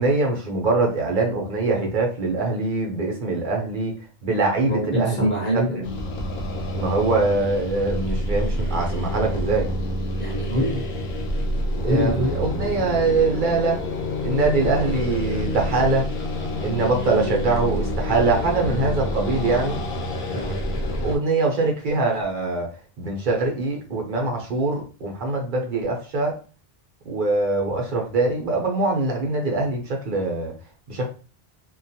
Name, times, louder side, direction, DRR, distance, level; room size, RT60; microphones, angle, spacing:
voice 1, 0.0-3.9 4.2-5.3 6.7-9.7 11.8-13.8 14.2-16.1 16.6-19.8 21.0-22.7 23.0-26.4 27.0-30.5 30.9-31.1, right 3 dB, 55° right, 0.8 m, -23 dB
voice 2, 4.7-5.9 10.2-10.8 11.8-12.4 20.3-20.6, equal, 10° left, 0.8 m, -24 dB
sound 1, 5.8-21.2, left 1 dB, 80° left, 0.8 m, -27 dB
2.4 x 2.2 x 2.6 m
omnidirectional pair, 1.1 m